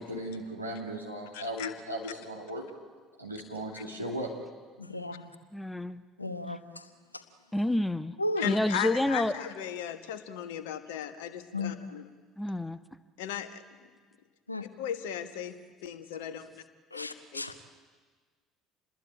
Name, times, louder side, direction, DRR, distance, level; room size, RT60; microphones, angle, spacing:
voice 1, 0.0-2.7 3.2-4.3, equal, 90° right, -2 dB, 2.5 m, -37 dB
voice 2, 1.3-1.7 3.7-3.8 8.4-12.1 13.2-13.6 14.6-16.5 16.9-17.5, left 9 dB, 65° left, 10 dB, 1.5 m, -37 dB
voice 3, 4.8-5.3 6.2-6.9 7.1-7.2 8.2-8.4 11.5-11.8 14.5-14.6 16.9-17.6, left 2 dB, 85° left, 12 dB, 1.1 m, -35 dB
voice 4, 5.5-6.0 7.5-8.2 8.4-9.3 12.4-12.8, left 1 dB, 5° left, 14 dB, 0.9 m, -28 dB
28.0 x 20.5 x 8.8 m, 1.5 s
figure-of-eight pair, 60°, 0 cm